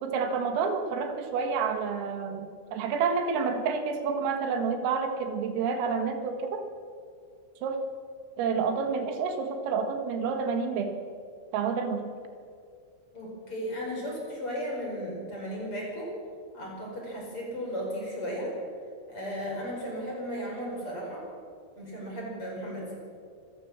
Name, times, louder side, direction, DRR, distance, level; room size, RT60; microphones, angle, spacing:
voice 1, 0.0-6.7 7.6-7.8 8.4-11.0 11.5-12.1, right 5 dB, 80° right, 6 dB, 4.2 m, -29 dB
voice 2, 13.1-16.1 16.5-18.5 19.1-21.3 21.8-22.9, equal, 25° left, -2 dB, 5.5 m, -35 dB
26.0 x 15.0 x 7.4 m, 2.3 s
omnidirectional pair, 6.0 m